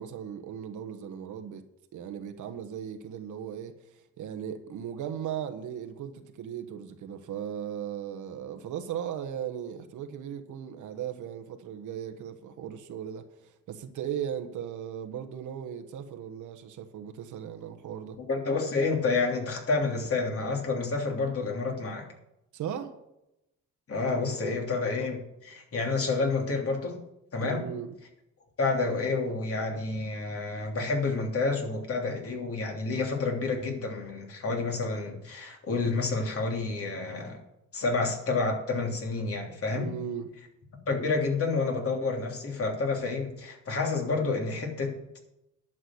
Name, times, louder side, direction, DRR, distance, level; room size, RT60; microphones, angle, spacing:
voice 1, 0.0-1.7 1.9-3.8 4.2-18.2 22.5-23.0 24.4-24.6 27.4-27.9 39.7-40.3, right 9 dB, 75° right, 1.4 m, -37 dB
voice 2, 18.2-22.1 23.9-27.0 27.3-27.6 28.6-37.4 37.7-39.9 40.8-45.2, left 3 dB, 50° left, 3.1 m, -29 dB
11.0 x 6.2 x 7.9 m
cardioid pair, 90°, 30 cm